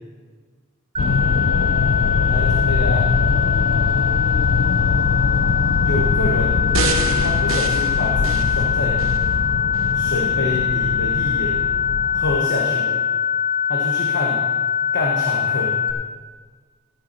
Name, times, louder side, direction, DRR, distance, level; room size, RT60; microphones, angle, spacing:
sound 1, 0.9-15.9, left 8 dB, 25° right, 0.7 m, -22 dB
sound 2, 1.0-12.4, left 4 dB, 75° left, 0.5 m, -22 dB
voice 1, 2.3-3.0 5.8-6.6 7.2-9.0 9.9-11.6 12.1-13.0 13.7-14.4 14.9-15.8, left 1 dB, 60° left, -1 dB, 1.2 m, -27 dB
sound 3, 6.7-9.2 9.7-9.8, right 5 dB, 70° right, 0.9 m, -27 dB
14.0 x 8.7 x 4.3 m, 1.5 s
head